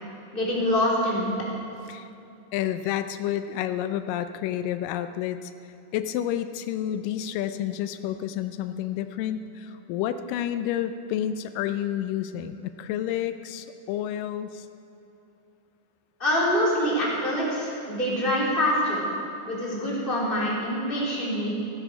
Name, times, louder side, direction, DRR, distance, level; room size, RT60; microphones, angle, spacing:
voice 1, 0.3-1.3 16.2-19.1 19.5-21.5, equal, 15° left, -5 dB, 2.9 m, -25 dB
voice 2, 2.5-5.5 5.9-14.7, left 11 dB, 90° left, 10 dB, 2.3 m, -30 dB
14.5 x 13.0 x 5.1 m, 2.8 s
omnidirectional pair, 3.8 m